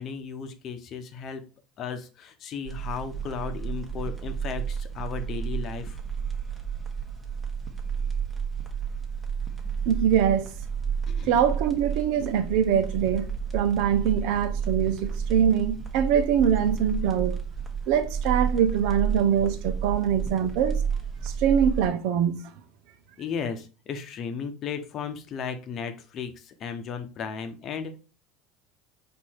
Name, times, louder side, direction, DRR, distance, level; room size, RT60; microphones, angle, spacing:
voice 1, 0.0-1.4 1.8-6.0 11.1-11.4 23.2-28.0, left 6 dB, 50° left, 0.8 m, -35 dB
sound 1, 2.6-21.9, right 6 dB, 15° right, 1.2 m, -31 dB
voice 2, 9.9-10.5 11.2-17.4 17.9-20.8 21.2-22.4, right 8 dB, 70° right, 0.6 m, -23 dB
4.5 x 2.7 x 4.3 m
hypercardioid pair, 90°, 0 cm